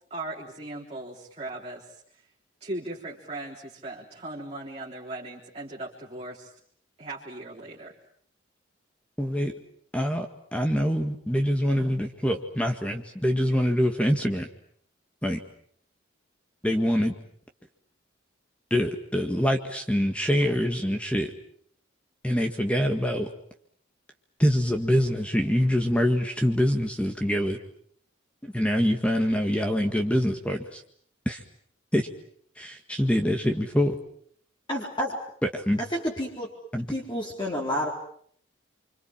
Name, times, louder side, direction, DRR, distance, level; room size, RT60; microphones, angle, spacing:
voice 1, 0.1-2.2 2.6-6.5 7.0-7.9, right 2 dB, 30° right, -3 dB, 3.7 m, -38 dB
voice 2, 9.2-9.5 9.9-14.5 15.2-15.4 16.6-17.1 18.7-21.3 22.2-23.3 24.4-27.6 28.4-30.8 31.2-31.4 31.9-32.1 32.6-34.0 35.4-35.8 36.7-36.8, equal, 5° left, 4 dB, 1.8 m, -25 dB
voice 3, 34.7-35.2 35.9-36.5 36.9-37.9, equal, 20° left, -3 dB, 4.2 m, -29 dB
30.0 x 25.5 x 7.5 m, 0.63 s
head